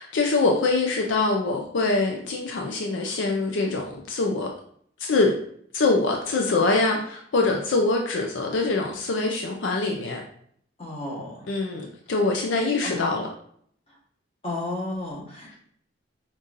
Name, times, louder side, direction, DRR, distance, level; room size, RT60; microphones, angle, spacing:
voice 1, 0.0-4.5 5.1-5.3 5.7-10.2 11.5-13.3, left 3 dB, 75° left, 1 dB, 0.5 m, -24 dB
voice 2, 10.8-11.5 12.8-13.1 14.4-15.6, left 2 dB, 30° left, -5 dB, 1.3 m, -33 dB
5.3 x 2.6 x 2.5 m, 0.63 s
head